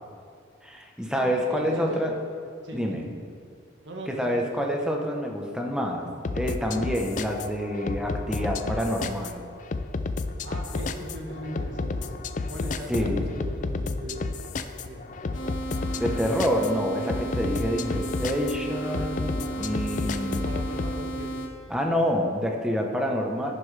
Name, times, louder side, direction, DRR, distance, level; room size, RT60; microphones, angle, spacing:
voice 1, 0.6-2.1 2.7-3.1 4.1-6.1 6.3-9.4 12.9-13.3 16.0-20.5 21.7-23.5, equal, 5° right, 1 dB, 0.9 m, -27 dB
voice 2, 1.2-2.0 2.6-3.1 3.8-4.5 10.4-12.1 12.5-14.3 14.6-15.0 20.1-21.3, equal, 70° right, 0 dB, 1.6 m, -39 dB
sound 1, 6.2-20.9, left 3 dB, 40° left, 0.4 m, -31 dB
sound 2, 15.3-21.5, right 2 dB, 90° left, 1.4 m, -34 dB
11.5 x 10.5 x 3.3 m, 2.3 s
head